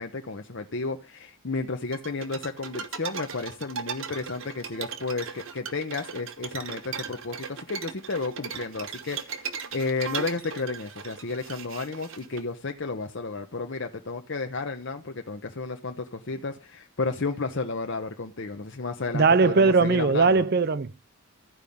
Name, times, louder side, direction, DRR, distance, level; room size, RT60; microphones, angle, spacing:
voice 1, 0.0-20.5, left 3 dB, 55° left, 0.8 m, -32 dB
sound 1, 1.9-12.4, right 6 dB, 65° right, 1.2 m, -37 dB
voice 2, 19.1-21.1, right 4 dB, 45° right, 0.5 m, -20 dB
14.0 x 5.3 x 8.5 m
head